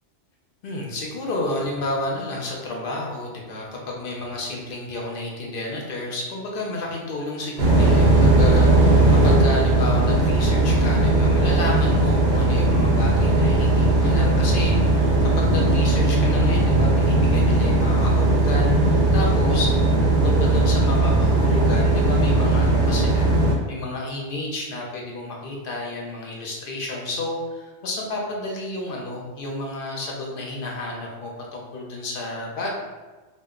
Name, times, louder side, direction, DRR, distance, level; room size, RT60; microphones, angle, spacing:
voice 1, 0.6-32.7, left 2 dB, 60° left, -2 dB, 0.6 m, -31 dB
sound 1, 7.6-23.5, right 2 dB, 85° right, 0.9 m, -18 dB
2.2 x 2.0 x 3.5 m, 1.2 s
omnidirectional pair, 1.2 m